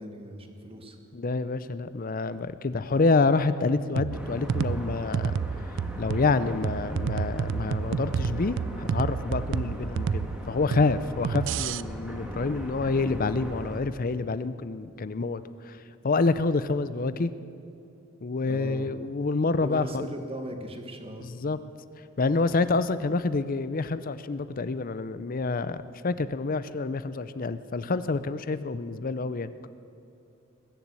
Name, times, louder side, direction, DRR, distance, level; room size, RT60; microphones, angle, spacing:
voice 1, 0.0-1.0 18.4-18.9 19.6-21.3, right 1 dB, 30° right, 5 dB, 1.4 m, -38 dB
voice 2, 1.1-5.4 6.0-17.3 18.2-20.1 21.2-21.6 22.2-29.7, left 3 dB, 45° left, 14 dB, 0.6 m, -27 dB
sound 1, 4.0-11.8, right 6 dB, 60° right, 0.3 m, -30 dB
sound 2, 4.1-13.8, equal, 5° right, 1.6 m, -39 dB
21.0 x 7.2 x 8.3 m, 2.7 s
head